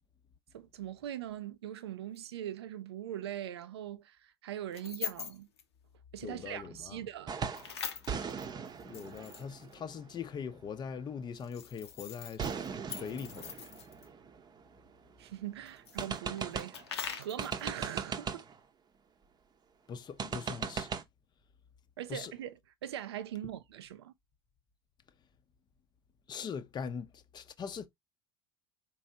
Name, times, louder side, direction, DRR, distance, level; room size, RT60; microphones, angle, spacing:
voice 1, 0.5-5.5 6.1-7.3 15.2-18.5 22.0-24.1, right 11 dB, 80° right, 0.5 m, -41 dB
sound 1, 2.1-2.2 4.7-5.6 7.5-9.7 11.3-14.1 15.7-17.6, left 8 dB, 80° left, 0.7 m, -43 dB
voice 2, 6.2-7.0 8.8-13.6 19.9-20.9 22.1-22.3 26.3-27.9, left 6 dB, 35° left, 0.6 m, -41 dB
sound 2, 7.3-7.8 8.1-10.7 12.4-15.1 15.5-15.6 16.0-16.9 17.4-18.6 20.2-21.0, right 6 dB, 30° right, 0.8 m, -39 dB
4.6 x 3.1 x 2.7 m
hypercardioid pair, 70°, 13 cm